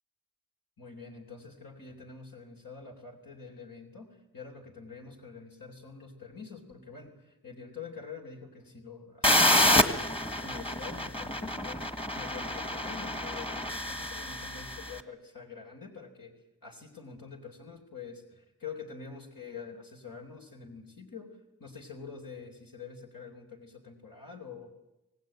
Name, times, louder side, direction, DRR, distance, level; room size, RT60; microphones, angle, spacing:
voice 1, 0.8-16.3 16.6-24.7, left 5 dB, 70° left, 1 dB, 3.8 m, -46 dB
sound 1, 9.2-14.9, left 1 dB, 15° left, 1.7 m, -28 dB
25.0 x 19.0 x 9.1 m, 0.95 s
wide cardioid pair, 60°, 35 cm